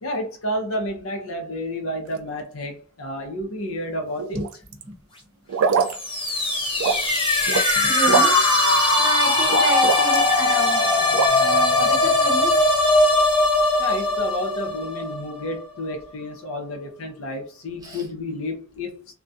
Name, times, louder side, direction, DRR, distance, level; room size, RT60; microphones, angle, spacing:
voice 1, 0.0-4.4 13.8-19.1, left 1 dB, 70° left, 0.6 m, -30 dB
sound 1, 4.2-4.8 5.5-6.0 6.3-6.4 6.8-7.7 8.0-8.5 9.5-10.3 11.1-11.3, right 5 dB, 75° right, 0.3 m, -22 dB
sound 2, 5.8-15.6, left 2 dB, 25° left, 0.6 m, -20 dB
voice 2, 7.7-8.4 9.0-10.9 11.4-12.6 17.8-18.0, right 2 dB, 20° right, 0.8 m, -29 dB
2.3 x 2.2 x 2.6 m
head